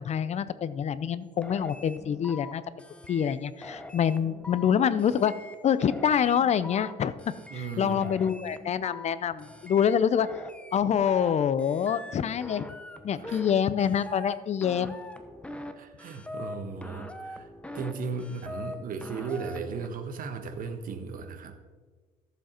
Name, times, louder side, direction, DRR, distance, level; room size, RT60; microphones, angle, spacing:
voice 1, 0.0-2.6 3.1-5.3 5.6-7.1 7.5-10.3 10.7-12.7 13.0-15.0, left 8 dB, 40° left, 15 dB, 0.6 m, -26 dB
sound 1, 1.4-2.5 2.8-3.3 3.6-4.7 5.0-5.5 5.8-6.9 7.2-7.7 8.0-9.1 9.4-9.9 10.2-11.3 11.6-12.1 12.4-13.5 13.8-14.3 14.6-15.7 16.0-16.5 16.8-17.9 18.2-18.7 19.0-19.9, left 2 dB, 5° left, 0.9 m, -42 dB
voice 2, 7.5-8.3 13.2-13.4 15.7-17.5 17.7-21.6, right 5 dB, 55° right, 6 dB, 1.4 m, -36 dB
13.5 x 7.3 x 4.4 m, 1.4 s
cardioid pair, 110°, 17 cm